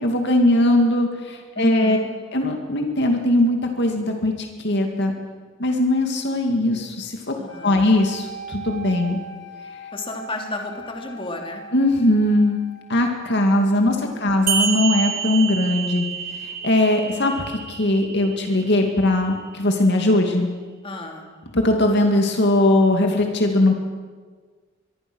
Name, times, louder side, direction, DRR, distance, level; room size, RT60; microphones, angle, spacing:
voice 1, 0.0-2.0 2.3-5.1 5.6-7.3 7.6-9.2 11.7-12.6 12.9-16.1 16.4-20.5 21.5-23.7, left 1 dB, 55° left, 3 dB, 2.4 m, -20 dB
voice 2, 1.5-2.1 7.4-7.8 9.9-11.6 20.8-21.3, left 1 dB, 25° left, 2 dB, 3.1 m, -32 dB
sound 1, 7.5-15.5, right 1 dB, 75° left, 5.5 m, -41 dB
sound 2, 14.5-19.5, right 7 dB, 45° right, 1.5 m, -28 dB
24.5 x 23.0 x 6.3 m, 1.5 s
head